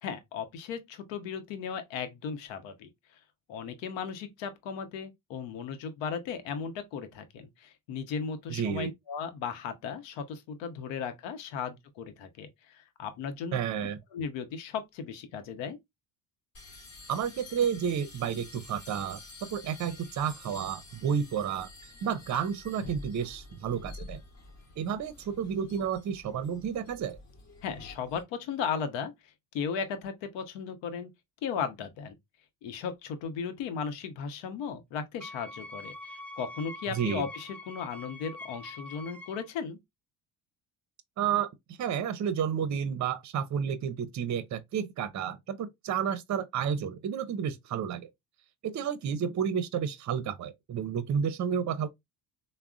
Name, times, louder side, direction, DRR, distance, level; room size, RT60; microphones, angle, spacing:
voice 1, 0.0-3.2 3.5-13.6 14.1-15.8 27.6-29.1 29.5-31.1 31.4-32.2 32.6-39.8, left 6 dB, 75° left, 0.8 m, -36 dB
voice 2, 8.5-8.9 13.5-14.0 17.1-19.2 19.5-21.7 22.0-24.2 24.8-27.2 36.9-37.2 41.2-41.5 41.8-48.1 48.6-51.9, right 8 dB, 40° right, 0.6 m, -31 dB
sound 1, 16.5-28.2, left 2 dB, 40° left, 1.2 m, -49 dB
Wind instrument woodwind instrument, 35.2-39.5, left 2 dB, 5° left, 0.3 m, -44 dB
3.5 x 2.1 x 2.4 m
supercardioid pair, 80°, 44 cm